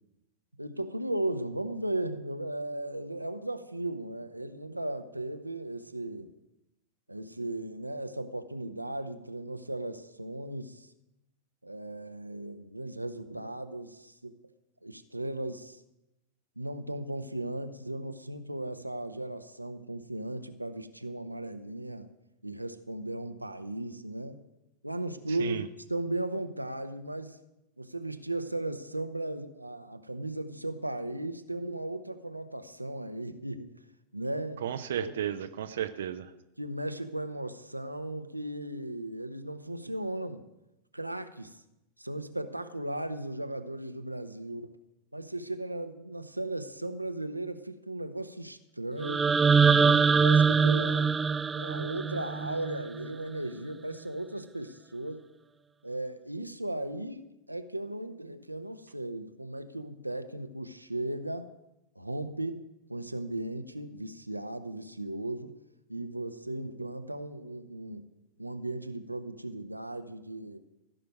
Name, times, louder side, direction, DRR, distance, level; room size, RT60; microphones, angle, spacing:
voice 1, 0.6-6.3 7.1-10.9 11.6-14.3 14.8-15.8 16.6-22.1 22.4-24.4 24.8-25.6 25.9-27.4 27.8-33.7 34.1-34.6 35.0-35.1 36.6-40.4 40.9-41.6 42.0-44.7 45.1-49.3 49.8-51.2 51.5-55.2 55.8-61.5 62.0-65.5 65.9-68.1 68.4-70.6, right 1 dB, 85° right, 8 dB, 0.9 m, -36 dB
voice 2, 25.3-25.7 34.6-36.3, right 10 dB, 60° right, 9 dB, 0.7 m, -34 dB
sound 1, 49.0-53.1, right 5 dB, 15° right, 0.4 m, -23 dB
16.0 x 6.6 x 9.4 m, 0.93 s
figure-of-eight pair, 90°, 0 cm